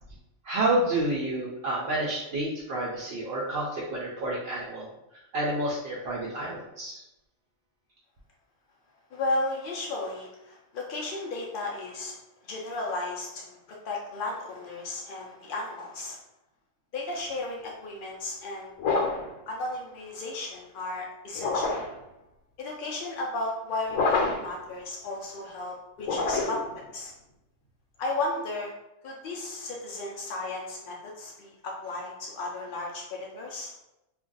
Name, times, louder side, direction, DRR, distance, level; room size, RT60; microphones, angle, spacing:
voice 1, 0.4-4.8 5.3-7.0, right 1 dB, 60° right, -5 dB, 0.7 m, -29 dB
voice 2, 9.1-12.1 12.4-16.2 16.9-18.7 19.5-21.8 22.6-27.1 28.0-28.7 29.0-33.8, left 2 dB, 70° left, -2 dB, 0.5 m, -34 dB
sound 1, 18.8-19.3 21.3-22.0 23.9-24.6 26.0-26.7, left 3 dB, 90° left, 1.0 m, -27 dB
2.5 x 2.3 x 3.8 m, 0.90 s
omnidirectional pair, 1.4 m